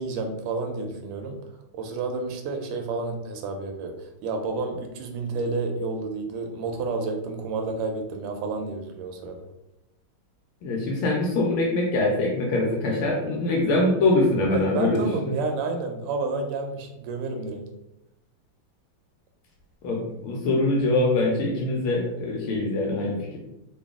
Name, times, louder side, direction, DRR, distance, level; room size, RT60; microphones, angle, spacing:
voice 1, 0.0-1.3 1.7-9.4 14.5-17.6, right 3 dB, 85° right, 4 dB, 1.5 m, -30 dB
voice 2, 10.6-15.3 19.8-23.4, left 2 dB, 75° left, -2 dB, 1.5 m, -23 dB
4.0 x 2.2 x 3.5 m, 0.90 s
omnidirectional pair, 2.4 m